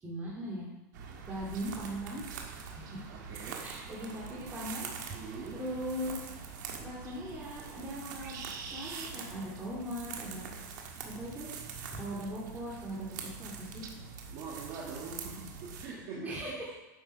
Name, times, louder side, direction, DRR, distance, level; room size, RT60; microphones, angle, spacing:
voice 1, 0.0-0.7 1.2-2.2 2.6-3.0 3.6-4.9 5.2-6.3 6.8-10.8 11.1-11.5 11.9-13.8 16.2-16.7, equal, 15° right, -5 dB, 2.4 m, -40 dB
sound 1, 0.9-15.9, right 6 dB, 80° right, 1.7 m, -44 dB
voice 2, 3.1-3.7 5.1-5.6 14.3-16.7, right 4 dB, 50° right, -5 dB, 2.1 m, -43 dB
9.0 x 7.0 x 5.4 m, 1.0 s
supercardioid pair, 135°, 10 cm